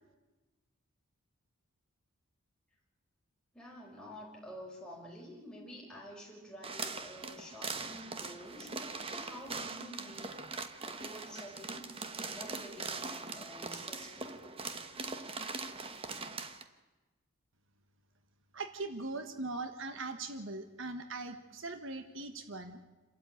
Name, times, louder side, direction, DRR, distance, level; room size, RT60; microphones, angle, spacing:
voice 1, 3.5-10.4 10.8-14.5, equal, 5° left, -3 dB, 5.1 m, -49 dB
sound 1, 6.6-16.6, right 4 dB, 25° right, 1.1 m, -41 dB
voice 2, 18.5-22.8, right 3 dB, 60° right, 8 dB, 1.3 m, -40 dB
28.0 x 13.0 x 9.2 m, 1.2 s
head